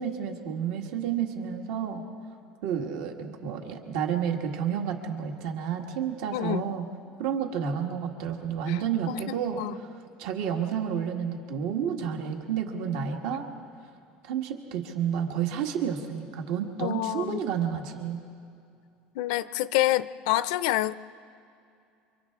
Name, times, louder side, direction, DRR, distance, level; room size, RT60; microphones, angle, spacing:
voice 1, 0.0-2.1 2.6-6.9 7.2-9.9 10.2-13.5 14.2-18.2, right 8 dB, 75° right, 3 dB, 1.8 m, -30 dB
voice 2, 6.3-6.7 8.7-9.2 9.6-9.8 13.3-13.4 16.8-17.4 19.2-20.9, left 15 dB, 85° left, 16 dB, 0.5 m, -28 dB
28.0 x 25.0 x 3.7 m, 2.5 s
cardioid pair, 170°, 3 cm